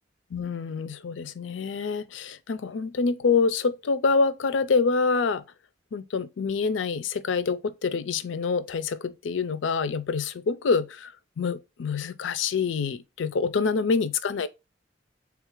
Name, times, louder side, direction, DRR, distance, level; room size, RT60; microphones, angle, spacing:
voice 1, 0.3-5.4 5.9-14.5, left 4 dB, 80° left, 0.4 m, -26 dB
3.6 x 2.4 x 4.5 m
head